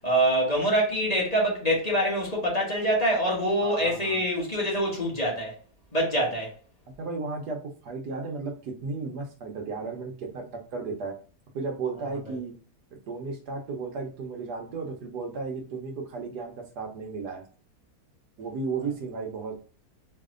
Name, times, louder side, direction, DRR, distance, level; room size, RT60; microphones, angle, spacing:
voice 1, 0.0-5.5 5.9-6.5, right 1 dB, 25° left, 1.4 m, -25 dB
voice 2, 3.6-4.2 7.0-11.1 11.5-12.5 13.1-17.4 18.4-19.5, right 4 dB, 85° right, 1.5 m, -34 dB
4.3 x 3.2 x 3.8 m
omnidirectional pair, 1.7 m